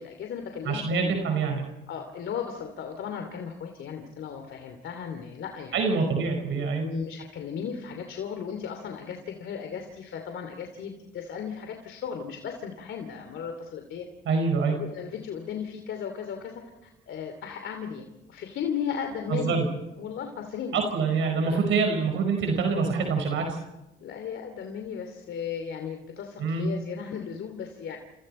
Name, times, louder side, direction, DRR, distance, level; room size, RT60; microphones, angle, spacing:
voice 1, 0.0-1.2 1.9-5.8 6.8-14.1 14.7-19.7 20.0-20.8 21.1-21.2 21.4-21.6 24.0-28.0, left 7 dB, 75° left, 5 dB, 2.8 m, -36 dB
voice 2, 0.7-1.6 5.7-6.9 14.3-14.8 19.3-19.6 20.7-23.6 26.4-26.7, right 4 dB, 80° right, 4 dB, 4.9 m, -25 dB
29.0 x 28.5 x 4.3 m, 0.95 s
cardioid pair, 90°, 20 cm